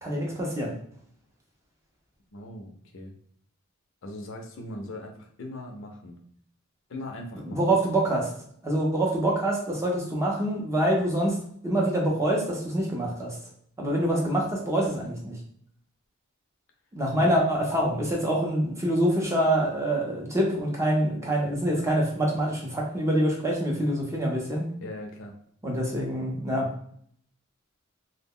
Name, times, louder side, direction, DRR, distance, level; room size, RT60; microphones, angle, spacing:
voice 1, 0.0-0.7 7.4-8.3 8.6-11.4 11.6-13.4 13.8-15.4 16.9-24.6 25.6-26.7, right 1 dB, 15° right, -2 dB, 0.5 m, -25 dB
voice 2, 2.3-3.1 4.0-6.2 6.9-7.8 17.2-17.3 24.8-25.3, left 1 dB, 60° left, 2 dB, 0.5 m, -40 dB
2.2 x 2.1 x 3.6 m, 0.65 s
head